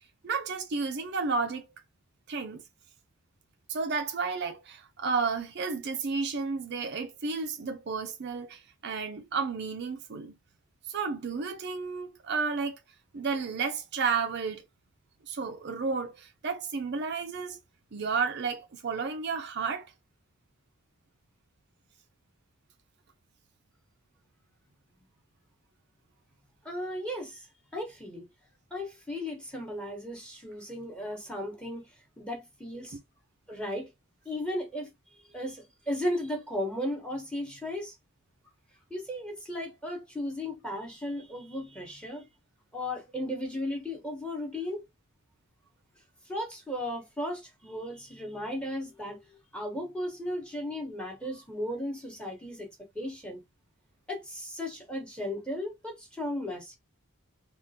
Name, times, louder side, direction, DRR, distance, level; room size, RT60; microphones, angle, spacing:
voice 1, 0.2-1.7 2.3-2.6 3.7-10.4 10.9-12.8 13.1-14.6 15.3-17.6 17.9-19.9, right 5 dB, 50° right, 0.5 m, -32 dB
voice 2, 26.6-27.5 27.7-28.2 28.7-31.9 32.2-33.0 33.5-33.9 34.2-37.9 38.9-42.2 42.7-44.8 46.3-52.7 52.9-53.4 54.1-56.8, left 1 dB, 5° left, 1.0 m, -35 dB
3.5 x 2.4 x 2.7 m
head